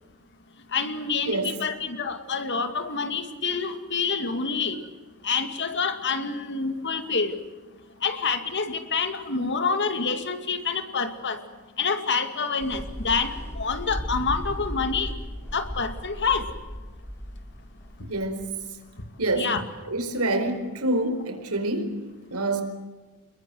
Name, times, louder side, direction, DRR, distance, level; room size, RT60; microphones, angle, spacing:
voice 1, 0.7-4.8 5.2-7.3 8.0-11.4 11.8-15.1 15.5-16.5 19.4-19.6, left 5 dB, 55° left, 9 dB, 2.4 m, -27 dB
voice 2, 1.3-1.6 18.0-18.6 19.2-19.5 19.8-22.6, right 2 dB, 80° right, 7 dB, 4.6 m, -27 dB
sound 1, 12.6-19.2, equal, 10° left, 4.0 m, -36 dB
28.0 x 22.0 x 7.9 m, 1.3 s
head